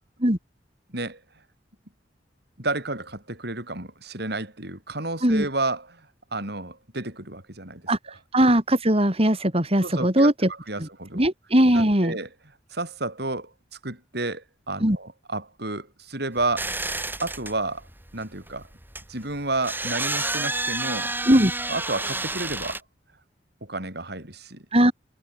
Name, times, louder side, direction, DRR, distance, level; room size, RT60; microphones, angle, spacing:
voice 1, 2.6-6.0 6.3-8.2 9.8-11.2 11.7-12.3 12.7-13.5 13.8-16.7 17.2-17.9 18.1-18.7 19.1-21.1 21.7-22.8 23.6-24.7, right 2 dB, 65° right, 7.8 m, -31 dB
voice 2, 8.3-10.3 11.1-12.1 14.8-15.0 21.3-21.5 24.7-24.9, right 1 dB, 35° right, 6.4 m, -19 dB
sound 1, 16.4-22.8, right 2 dB, 10° right, 4.3 m, -30 dB
head